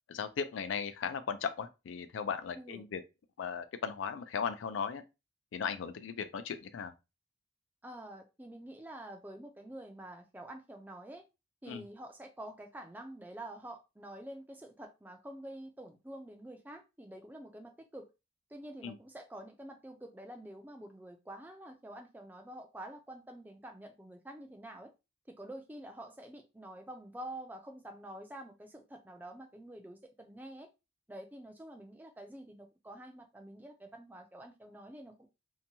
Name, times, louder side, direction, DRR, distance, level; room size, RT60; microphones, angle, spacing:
voice 1, 0.1-3.0 3.4-5.0 5.5-6.9 11.7-11.9 18.8-19.0, left 6 dB, 85° left, 0.4 m, -37 dB
voice 2, 7.8-11.2 11.6-18.1 18.5-24.9 25.3-30.7 31.1-35.3, right 1 dB, 10° right, 0.4 m, -48 dB
2.7 x 2.2 x 2.7 m
head